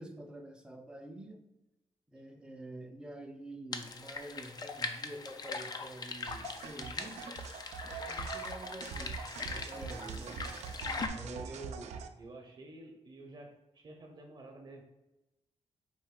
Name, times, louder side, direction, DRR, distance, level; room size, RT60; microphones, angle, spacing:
voice 1, 0.0-1.4 2.1-7.4 8.1-10.3 11.1-11.5, right 1 dB, 10° right, 3 dB, 0.6 m, -47 dB
sound 1, 3.7-11.1, left 4 dB, 35° left, 0.4 m, -41 dB
sound 2, 6.3-12.1, right 6 dB, 80° right, 0.4 m, -43 dB
voice 2, 10.1-10.9 11.3-14.8, right 2 dB, 40° right, 3 dB, 0.8 m, -50 dB
4.4 x 2.5 x 3.7 m, 0.97 s
cardioid pair, 100°, 12 cm